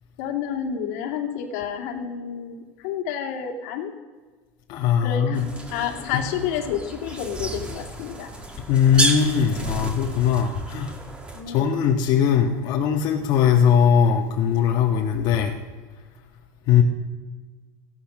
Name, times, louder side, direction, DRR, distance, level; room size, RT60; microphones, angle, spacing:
voice 1, 0.2-3.9 5.0-8.3 11.3-11.8, left 8 dB, 75° left, 2 dB, 2.4 m, -30 dB
voice 2, 4.7-5.4 6.1-6.2 8.7-10.9 11.5-15.5 16.7-16.8, left 8 dB, 55° left, 0 dB, 1.4 m, -20 dB
sound 1, 5.3-11.4, right 1 dB, 10° right, 2.3 m, -31 dB
16.0 x 12.0 x 6.3 m, 1.4 s
supercardioid pair, 130°, 9 cm